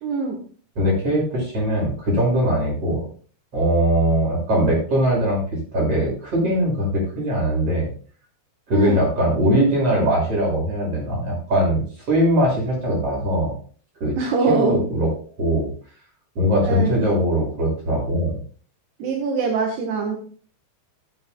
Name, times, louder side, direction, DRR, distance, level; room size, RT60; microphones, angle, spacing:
voice 1, 0.0-0.4 8.7-9.0 14.2-14.8 16.6-17.0 19.0-20.2, right 4 dB, 75° right, 1 dB, 3.6 m, -23 dB
voice 2, 0.8-3.0 3.5-5.4 5.7-7.9 8.7-11.8 12.1-13.5 14.0-14.1 14.5-15.1 15.4-15.7 16.4-18.4, equal, 35° right, -2 dB, 7.3 m, -21 dB
19.5 x 8.7 x 2.4 m, 0.41 s
omnidirectional pair, 4.8 m